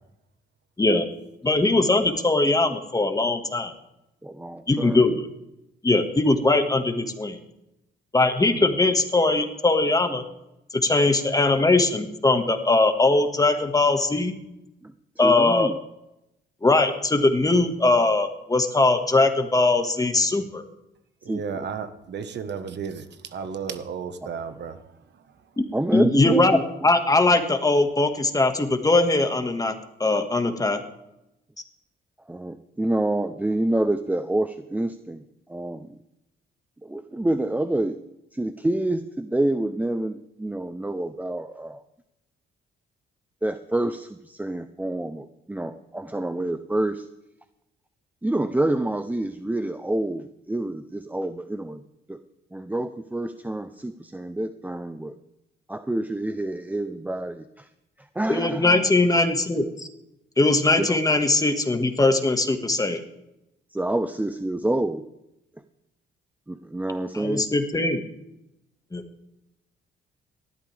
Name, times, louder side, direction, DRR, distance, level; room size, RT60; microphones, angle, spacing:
voice 1, 1.4-3.7 4.7-5.3 5.8-7.4 8.1-10.2 10.7-14.4 15.2-15.7 16.6-20.6 25.6-25.7 25.9-29.7 30.0-30.8 58.3-59.9 60.4-63.0 67.1-68.0 68.9-69.0, left 2 dB, 20° left, 7 dB, 1.7 m, -21 dB
voice 2, 4.2-5.1 14.8-15.8 21.2-21.7 25.7-26.6 32.3-36.0 36.8-38.0 38.3-41.8 43.4-47.1 48.2-51.8 52.1-52.2 52.5-55.2 55.7-57.7 58.0-58.9 60.8-61.0 63.7-65.0 66.5-67.4, right 1 dB, 10° right, 10 dB, 0.6 m, -28 dB
voice 3, 21.2-24.8 25.1-25.2, right 6 dB, 60° right, 10 dB, 1.4 m, -33 dB
18.5 x 13.0 x 3.5 m, 0.87 s
cardioid pair, 90°, 20 cm